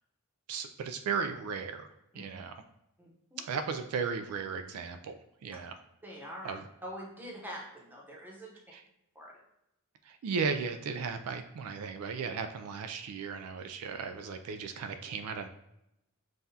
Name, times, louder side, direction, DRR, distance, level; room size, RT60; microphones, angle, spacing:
voice 1, 0.5-1.9 2.1-2.6 3.4-5.8 6.4-6.6 8.7-8.8 10.0-15.5, right 5 dB, 70° right, 8 dB, 0.3 m, -36 dB
voice 2, 3.0-3.4 6.0-6.5 6.8-8.5 9.1-9.3, equal, 10° right, -3 dB, 0.8 m, -44 dB
5.4 x 2.3 x 2.7 m, 0.84 s
head